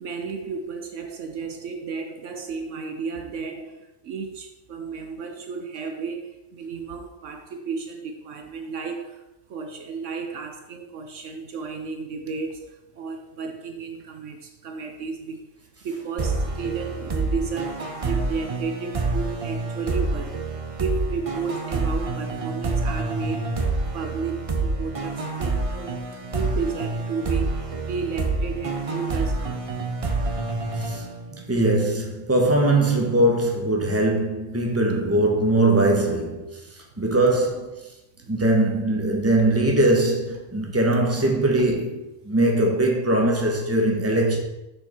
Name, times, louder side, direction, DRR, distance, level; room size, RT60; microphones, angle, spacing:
voice 1, 0.0-9.2 9.5-15.4 15.8-20.4 20.8-23.6 23.9-26.0 26.3-29.7 38.2-38.4 40.6-40.7 41.6-41.7, right 5 dB, 70° right, 1.1 m, -33 dB
sound 1, 16.2-31.6, right 3 dB, 30° right, 0.7 m, -28 dB
voice 2, 30.7-31.1 31.3-36.6 37.0-37.8 38.3-44.4, right 1 dB, 10° right, 1.2 m, -21 dB
6.5 x 6.3 x 4.5 m
omnidirectional pair, 1.4 m